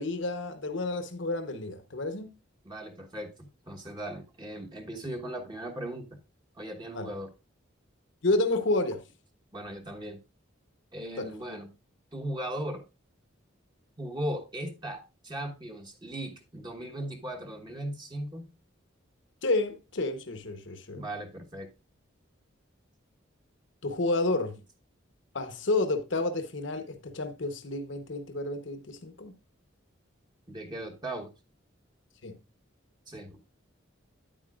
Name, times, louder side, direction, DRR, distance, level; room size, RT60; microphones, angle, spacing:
voice 1, 0.0-2.3 6.9-7.1 8.2-9.0 11.2-11.3 19.4-21.0 23.8-24.5 25.3-29.3 32.2-32.3, left 2 dB, 65° left, 1.0 m, -30 dB
voice 2, 2.6-6.1 6.6-7.3 9.5-10.2 10.9-11.7 12.1-12.8 14.0-18.5 20.9-21.7 30.5-31.3 33.1-33.4, right 1 dB, 20° right, 1.2 m, -38 dB
9.4 x 8.9 x 2.4 m
head